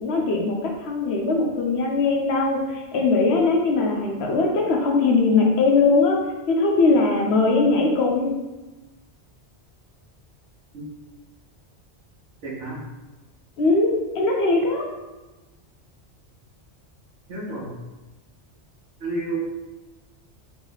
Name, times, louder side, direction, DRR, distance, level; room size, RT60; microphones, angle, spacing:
voice 1, 0.0-6.2 6.5-8.3 13.6-14.9, left 3 dB, 70° left, 0 dB, 1.0 m, -20 dB
voice 2, 12.4-12.8 17.3-17.7 19.0-19.4, right 2 dB, 85° right, -5 dB, 1.3 m, -30 dB
3.2 x 3.1 x 3.9 m, 1.1 s
omnidirectional pair, 1.1 m